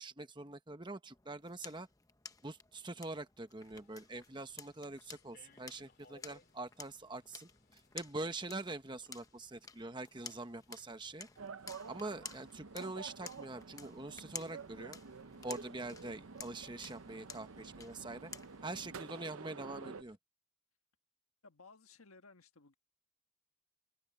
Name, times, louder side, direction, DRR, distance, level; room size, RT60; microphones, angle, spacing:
voice 1, 0.0-1.9 2.4-7.5 7.9-11.3 11.9-15.0 15.4-18.3 18.6-20.2, right 2 dB, 20° right, 1.1 m, -44 dB
sound 1, 1.1-18.8, left 5 dB, 15° left, 0.9 m, -53 dB
sound 2, 3.6-20.2, left 2 dB, 45° left, 3.0 m, -69 dB
sound 3, 11.4-20.0, right 5 dB, 80° right, 0.7 m, -50 dB
voice 2, 18.6-19.2 21.4-22.8, left 3 dB, 85° left, 1.5 m, -60 dB
open air
head